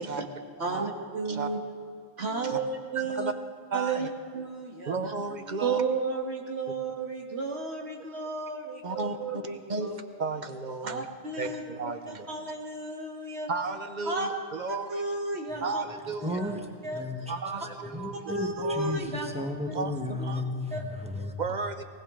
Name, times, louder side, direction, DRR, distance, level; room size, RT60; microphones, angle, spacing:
voice 1, 0.6-1.6 2.2-3.3 3.7-4.1 4.3-4.9 5.6-9.9 10.8-11.6 12.3-13.5 14.1-14.3 14.9-15.8 16.2-16.6 16.8-17.1 18.3-19.3 19.7-19.8 20.7-20.8, right 3 dB, 80° right, 1 dB, 1.9 m, -33 dB
voice 2, 2.2-2.6 2.9-3.3 3.7-4.1 4.9-5.8 8.8-9.4 9.7-11.1 11.4-12.3 13.5-15.0 15.6-16.4 17.3-18.3 18.6-18.9 19.7-20.4 21.4-21.8, right 4 dB, 45° right, 8 dB, 1.0 m, -34 dB
voice 3, 16.2-16.6 16.9-17.4 17.8-21.3, left 1 dB, 5° right, 2 dB, 1.2 m, -34 dB
19.5 x 18.0 x 3.8 m, 2.1 s
omnidirectional pair, 1.1 m